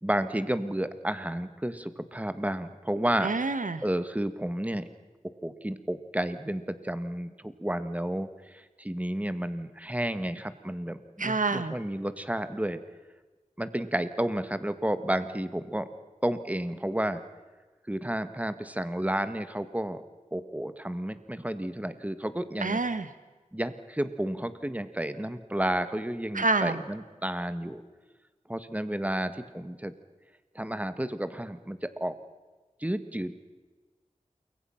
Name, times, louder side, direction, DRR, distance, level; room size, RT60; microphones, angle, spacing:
voice 1, 0.0-3.3 3.8-4.9 5.2-12.8 13.6-15.9 16.2-17.2 17.9-20.0 20.3-22.8 23.5-27.8 28.5-29.9 30.5-32.1 32.8-33.5, right 1 dB, 10° right, 11 dB, 1.6 m, -31 dB
voice 2, 3.2-3.8 11.2-11.7 22.6-23.1 26.3-26.8, right 3 dB, 85° right, 12 dB, 1.3 m, -27 dB
28.5 x 22.5 x 5.8 m, 1.3 s
wide cardioid pair, 60°, 13 cm